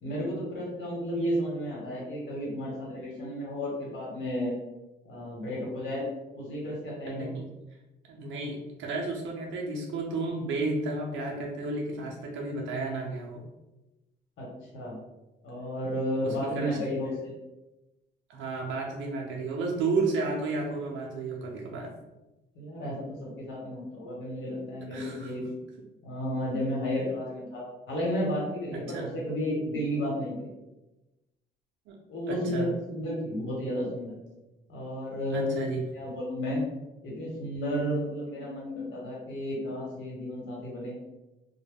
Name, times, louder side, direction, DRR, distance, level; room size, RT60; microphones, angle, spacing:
voice 1, 0.0-4.6 5.0-6.0 6.3-7.3 14.4-14.5 14.7-14.9 15.4-17.3 22.5-25.4 26.0-30.5 32.1-34.1 34.7-36.6 37.0-40.9, equal, 75° left, -4 dB, 1.2 m, -32 dB
voice 2, 7.1-7.5 8.1-13.4 16.2-17.0 18.3-21.9 24.9-25.3 28.7-29.1 31.9-32.0 32.3-32.7 35.3-35.8, right 3 dB, 80° right, -1 dB, 0.5 m, -32 dB
2.2 x 2.1 x 3.4 m, 1.0 s
cardioid pair, 90°, 20 cm